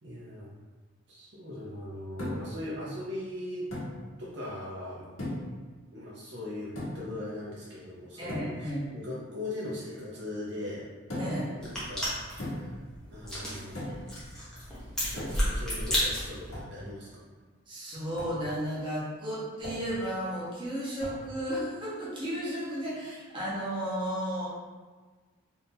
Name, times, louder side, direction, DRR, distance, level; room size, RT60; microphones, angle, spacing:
voice 1, 0.0-0.5 1.1-3.7 4.2-5.1 5.9-10.9 11.5-12.8 13.1-13.8 15.1-17.2, left 1 dB, 55° right, -7 dB, 0.7 m, -40 dB
sound 1, 2.2-2.6 3.7-4.0 5.2-5.6 6.8-7.1 8.3-8.6 11.1-11.5 12.4-12.8 13.7-14.1 15.2-15.6 16.5-16.8 18.2-18.4 19.6-20.0 21.0-21.3, left 1 dB, 80° left, 1.2 m, -37 dB
voice 2, 8.2-8.8 11.2-11.5 17.7-24.5, equal, 25° right, -8 dB, 0.9 m, -33 dB
sound 2, 11.6-16.6, equal, 5° left, 0.9 m, -33 dB
3.6 x 2.7 x 2.7 m, 1.4 s
head